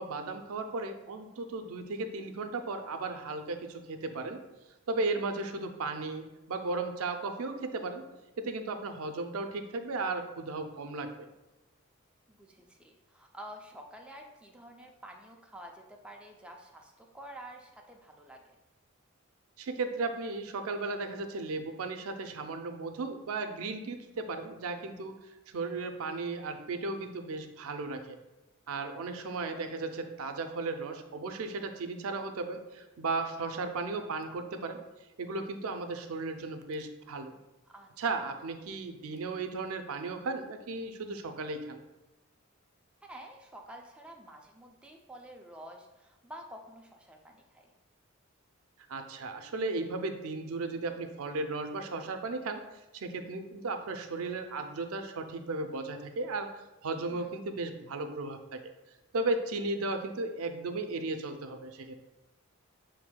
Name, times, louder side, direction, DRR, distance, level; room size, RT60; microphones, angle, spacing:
voice 1, 0.0-4.4 4.9-8.0 8.4-11.3 19.6-25.2 25.5-28.2 28.7-34.8 35.2-37.3 38.0-41.8 48.9-52.6 52.9-58.7 59.1-61.9, right 3 dB, 85° right, 7 dB, 0.5 m, -35 dB
voice 2, 12.3-18.4 37.7-37.9 43.0-47.7 57.1-57.3, right 1 dB, 5° right, 1 dB, 0.4 m, -49 dB
7.1 x 2.6 x 2.2 m, 1.0 s
head